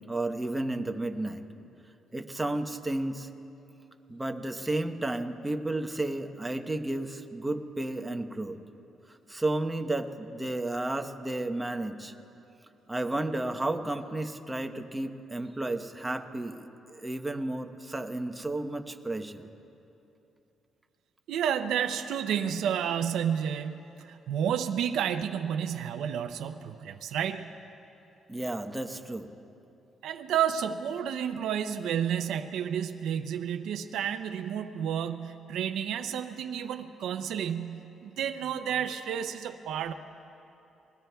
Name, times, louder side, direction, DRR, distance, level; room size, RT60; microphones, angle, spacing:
voice 1, 0.1-1.4 2.1-3.3 4.1-8.6 9.1-12.1 12.9-19.5 28.3-29.3, right 2 dB, 10° right, 5 dB, 0.9 m, -32 dB
voice 2, 21.3-27.5 30.0-39.9, right 8 dB, 80° right, 7 dB, 0.5 m, -31 dB
28.5 x 20.5 x 2.3 m, 2.9 s
cardioid pair, 90°, 0 cm